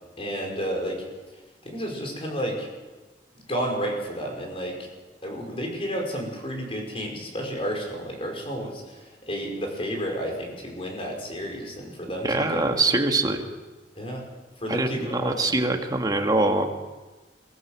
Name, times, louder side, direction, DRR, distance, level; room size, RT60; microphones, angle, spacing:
voice 1, 0.2-1.0 1.6-2.7 3.5-4.8 5.2-8.8 9.3-12.6 14.0-14.2 14.6-15.6, equal, 35° left, 1 dB, 5.4 m, -31 dB
voice 2, 12.2-13.5 14.7-16.8, right 2 dB, 25° right, 3 dB, 1.9 m, -24 dB
23.0 x 16.0 x 7.5 m, 1.2 s
head